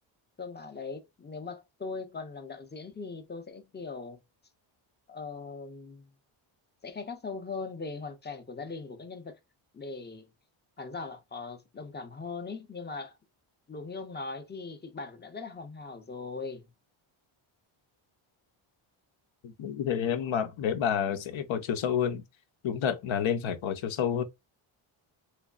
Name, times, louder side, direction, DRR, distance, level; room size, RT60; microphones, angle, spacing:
voice 1, 0.4-4.2 5.1-6.1 6.8-9.4 9.7-10.3 10.8-13.2 13.7-16.7, left 4 dB, 20° left, 0.6 m, -40 dB
voice 2, 19.4-22.2 22.6-24.2, left 8 dB, 70° left, 0.8 m, -29 dB
3.2 x 3.1 x 2.4 m
cardioid pair, 115°, 49 cm